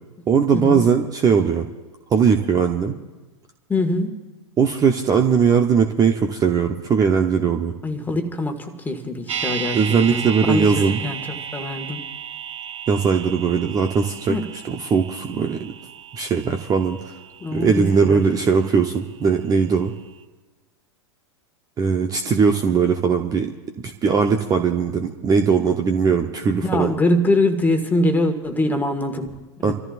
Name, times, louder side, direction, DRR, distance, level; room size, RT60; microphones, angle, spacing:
voice 1, 0.3-1.7 2.1-2.9 4.6-7.7 9.7-11.0 12.9-14.4 14.6-15.7 16.1-17.1 17.5-19.9 21.8-23.5 23.8-26.9 29.6-29.7, right 6 dB, 25° right, 5 dB, 0.9 m, -19 dB
voice 2, 3.7-4.1 7.8-9.8 10.1-12.0 14.3-14.4 17.4-18.2 26.6-29.7, left 1 dB, 10° left, 5 dB, 1.8 m, -23 dB
sound 1, 9.3-19.3 19.6-19.7, right 8 dB, 75° right, 0.9 m, -34 dB
28.5 x 14.0 x 2.6 m, 1.2 s
hypercardioid pair, 100°, 16 cm